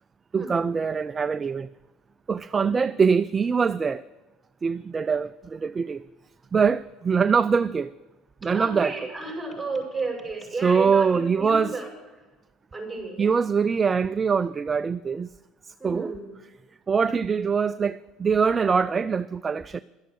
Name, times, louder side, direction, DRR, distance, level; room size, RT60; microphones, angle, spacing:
voice 1, 0.3-1.7 2.3-4.0 4.6-6.0 6.5-7.9 8.4-9.1 10.5-11.8 13.2-15.3 15.8-16.1 16.9-19.8, right 5 dB, 30° right, 0.4 m, -23 dB
voice 2, 8.5-11.9 12.7-13.3 15.8-16.3, right 3 dB, 10° right, 6.2 m, -33 dB
12.0 x 11.5 x 7.8 m
supercardioid pair, 95°, 0 cm